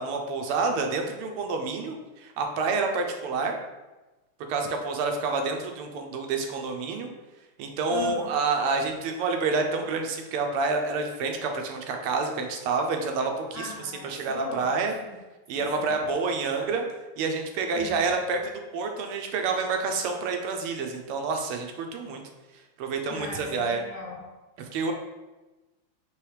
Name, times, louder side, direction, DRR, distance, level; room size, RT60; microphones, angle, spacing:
voice 1, 0.0-3.5 4.5-7.1 7.6-13.7 14.0-14.9 15.5-16.9 17.2-22.2 22.8-23.9 24.6-24.9, right 4 dB, 85° right, 4 dB, 1.5 m, -28 dB
voice 2, 7.9-8.4 13.5-14.8 15.0-15.2 15.5-16.1 17.7-18.1 23.1-24.2, left 4 dB, 65° left, -8 dB, 0.7 m, -39 dB
4.6 x 3.4 x 3.3 m, 1.1 s
omnidirectional pair, 2.4 m